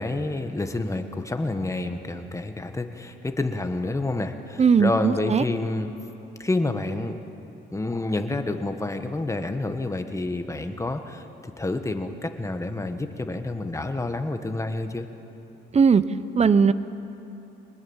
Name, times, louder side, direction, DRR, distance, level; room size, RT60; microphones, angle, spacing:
voice 1, 0.0-5.9 6.4-7.2 7.7-15.1, left 2 dB, 15° left, 6 dB, 1.6 m, -29 dB
voice 2, 4.6-5.4 15.7-16.0 16.4-16.7, right 5 dB, 35° right, 15 dB, 0.8 m, -18 dB
23.5 x 20.0 x 7.3 m, 3.0 s
cardioid pair, 90°, 20 cm